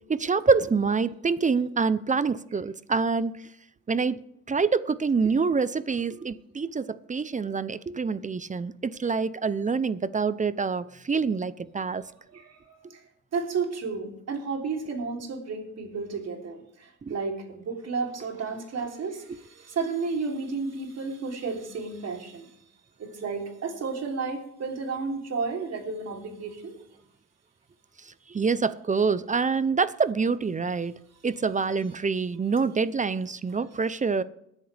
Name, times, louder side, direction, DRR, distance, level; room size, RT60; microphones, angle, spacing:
voice 1, 0.1-3.3 3.9-4.2 4.5-12.0 17.1-17.2 28.3-31.0 31.2-34.2, right 5 dB, 25° right, 0.6 m, -26 dB
voice 2, 12.3-13.0 13.3-22.5 23.0-26.7, right 4 dB, 60° right, 3.4 m, -32 dB
19.5 x 10.5 x 3.4 m
cardioid pair, 90°, 30 cm